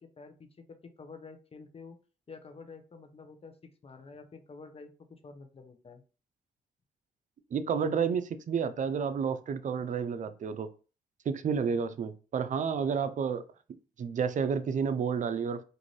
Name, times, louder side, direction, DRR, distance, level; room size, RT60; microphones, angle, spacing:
voice 1, 0.0-2.0 2.3-3.6 3.8-6.0 13.0-13.1, left 4 dB, 35° left, 0.7 m, -49 dB
voice 2, 7.5-10.7 11.3-13.4 14.0-15.6, right 6 dB, 50° right, 0.4 m, -30 dB
2.6 x 2.5 x 3.1 m
supercardioid pair, 50°, 16 cm